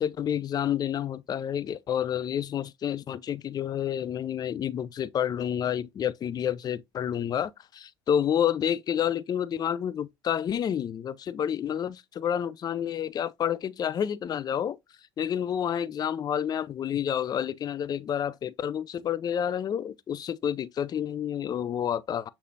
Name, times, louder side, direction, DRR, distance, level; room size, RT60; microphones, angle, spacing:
voice 1, 0.0-14.8 15.2-22.3, left 9 dB, 30° left, 0.3 m, -29 dB
6.4 x 2.7 x 2.6 m
hypercardioid pair, 70°, 13 cm